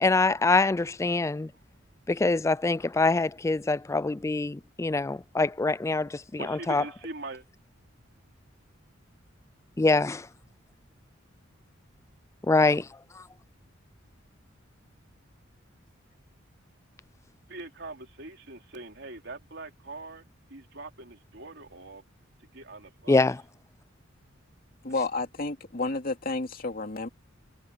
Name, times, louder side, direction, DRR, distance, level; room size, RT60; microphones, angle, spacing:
voice 1, 0.0-1.5 2.1-6.8 9.8-10.3 12.5-12.9 13.2-13.3 23.1-23.4, left 3 dB, 15° left, 0.3 m, -24 dB
voice 2, 6.4-7.4 17.5-20.2 20.5-22.0 22.5-23.2, right 2 dB, 60° right, 3.4 m, -42 dB
voice 3, 24.8-27.1, left 3 dB, 45° left, 2.4 m, -31 dB
head